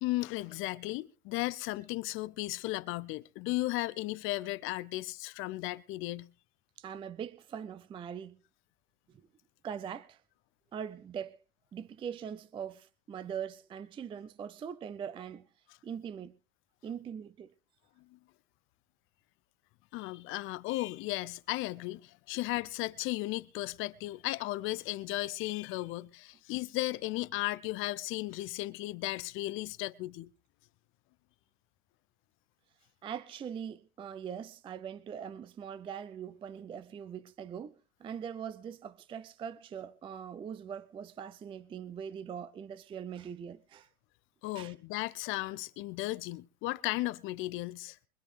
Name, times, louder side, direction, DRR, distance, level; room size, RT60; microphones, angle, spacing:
voice 1, 0.0-6.3 18.1-18.2 19.9-30.3 44.4-48.0, left 18 dB, 30° left, 0.6 m, -35 dB
voice 2, 6.8-8.4 9.6-10.2 10.7-11.4 11.7-15.4 15.8-16.3 16.8-17.5 33.0-37.7 38.0-43.9 44.5-44.7, right 8 dB, 10° right, 0.5 m, -42 dB
24.0 x 9.8 x 3.4 m
hypercardioid pair, 110°, 42 cm